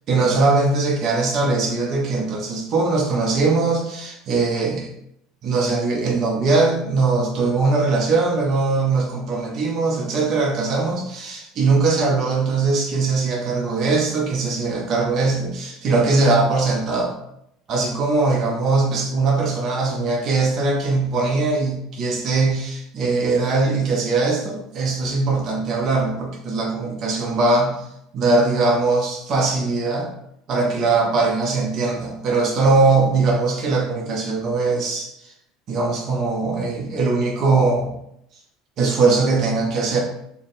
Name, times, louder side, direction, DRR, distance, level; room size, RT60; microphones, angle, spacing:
voice 1, 0.1-4.9 5.4-17.1 17.7-27.8 28.1-30.1 30.5-35.3 35.7-37.9 38.8-40.0, right 3 dB, 40° right, -1 dB, 0.7 m, -21 dB
3.4 x 2.1 x 4.2 m, 0.76 s
cardioid pair, 145°, 0 cm